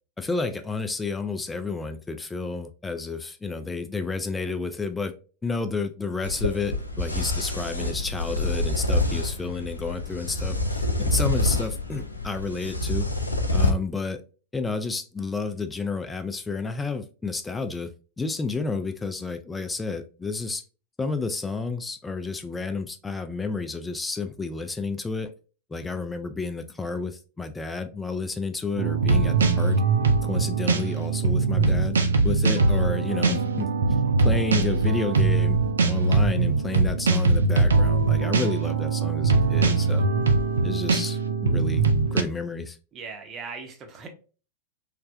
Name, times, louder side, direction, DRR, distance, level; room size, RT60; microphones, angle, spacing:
voice 1, 0.2-5.1 5.4-13.1 13.5-14.2 14.5-17.9 18.2-20.6 21.0-25.3 25.7-29.8 30.2-32.0 32.2-33.7 34.2-35.6 35.9-40.1 40.6-42.8, left 4 dB, 10° left, 0.4 m, -31 dB
sound 1, 6.2-13.7, left 2 dB, 85° left, 0.4 m, -27 dB
sound 2, 28.8-42.2, right 4 dB, 70° right, 0.3 m, -22 dB
voice 2, 38.1-38.5 42.9-44.1, right 5 dB, 30° right, 0.7 m, -39 dB
3.3 x 2.1 x 2.4 m
figure-of-eight pair, 90°, 0 cm